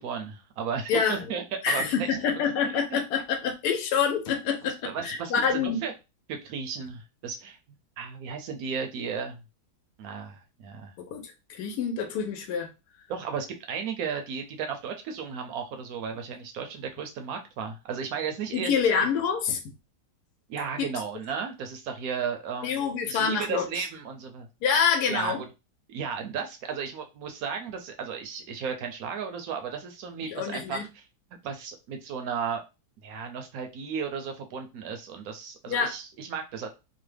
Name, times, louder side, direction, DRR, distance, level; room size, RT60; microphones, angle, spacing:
voice 1, 0.0-2.2 2.6-3.0 4.6-5.9 6.3-7.6 8.0-9.4 10.0-10.9 13.1-19.1 20.5-24.5 25.1-25.5 25.9-31.0 31.4-32.6 33.0-36.7, right 6 dB, 70° right, 0.9 m, -34 dB
voice 2, 0.9-1.2 1.6-4.8 5.0-5.8 11.0-11.2 11.5-12.7 18.5-19.6 20.8-20.9 22.6-23.6 24.6-25.4 30.3-30.8 35.7-35.9, left 6 dB, 80° left, 1.2 m, -26 dB
3.0 x 2.1 x 3.2 m
omnidirectional pair, 1.7 m